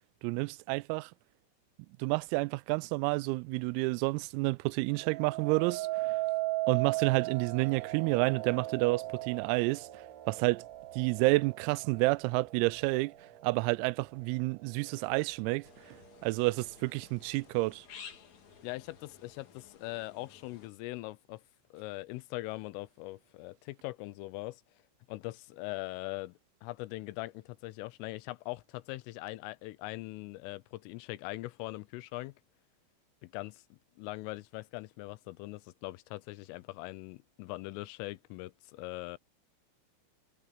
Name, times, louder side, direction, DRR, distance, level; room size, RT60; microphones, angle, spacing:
voice 1, 0.2-1.1 2.0-6.1 6.7-9.9 10.3-10.6 11.0-13.1 13.4-15.6 16.2-17.8, right 24 dB, 90° right, 3.3 m, -29 dB
sound 1, 5.0-14.1 14.7-15.1, right 18 dB, 65° right, 3.8 m, -37 dB
sound 2, 15.6-20.7, left 7 dB, 50° left, 2.5 m, -54 dB
voice 2, 18.6-21.4 21.7-24.6 25.1-32.3 33.2-39.2, left 20 dB, 80° left, 3.2 m, -41 dB
omnidirectional pair, 6.0 m